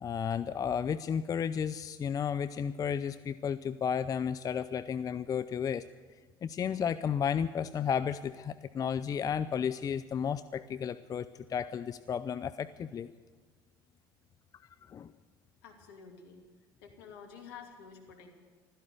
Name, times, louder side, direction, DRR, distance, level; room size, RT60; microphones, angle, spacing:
voice 1, 0.0-5.8 6.4-13.1 14.6-15.1, left 7 dB, 30° left, 13 dB, 0.5 m, -33 dB
voice 2, 15.6-16.5 16.8-18.3, left 6 dB, 70° left, 2 dB, 2.7 m, -50 dB
15.5 x 13.0 x 6.9 m, 1.4 s
hypercardioid pair, 65°, 12 cm